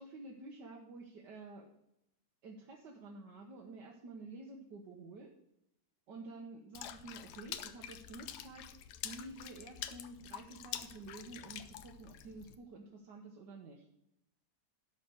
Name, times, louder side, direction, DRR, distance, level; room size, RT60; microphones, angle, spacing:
voice 1, 0.0-1.7 2.4-5.3 6.1-8.6 9.0-13.9, right 3 dB, 85° right, -1 dB, 1.7 m, -50 dB
Water / Splash splatter, 6.7-12.6, left 10 dB, 80° left, 1.2 m, -46 dB
12.0 x 4.4 x 7.8 m, 0.81 s
omnidirectional pair, 1.8 m